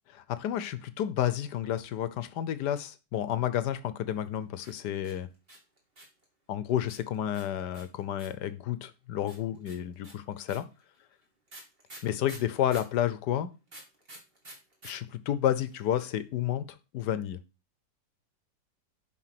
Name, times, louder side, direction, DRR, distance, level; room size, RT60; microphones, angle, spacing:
voice 1, 0.1-5.3 6.5-10.6 12.0-13.5 14.8-16.6 16.9-17.4, left 11 dB, 75° left, 13 dB, 1.4 m, -31 dB
sound 1, 4.6-6.2 6.9-8.5 9.3-13.0 13.7-14.9 15.2-15.3 15.5-16.0, right 1 dB, 30° right, 3.1 m, -49 dB
11.0 x 4.4 x 5.9 m, 0.30 s
omnidirectional pair, 1.9 m